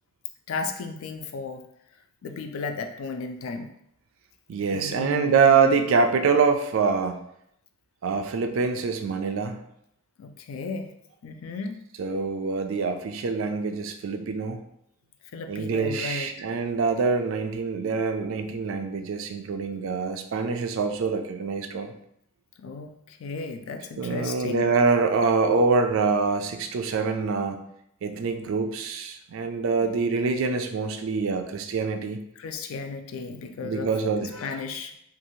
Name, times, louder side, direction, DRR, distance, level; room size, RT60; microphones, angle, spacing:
voice 1, 0.5-1.6 2.2-3.7 4.7-5.8 10.2-10.9 11.2-11.8 15.3-16.3 22.6-24.7 29.8-29.9 32.4-33.9 34.2-34.9, left 4 dB, 70° left, 6 dB, 0.3 m, -35 dB
voice 2, 4.5-7.2 8.0-9.6 12.0-14.6 15.5-21.9 24.0-27.6 28.0-32.2 33.6-34.3, right 4 dB, 65° right, 5 dB, 0.3 m, -25 dB
3.0 x 2.4 x 2.6 m, 0.75 s
head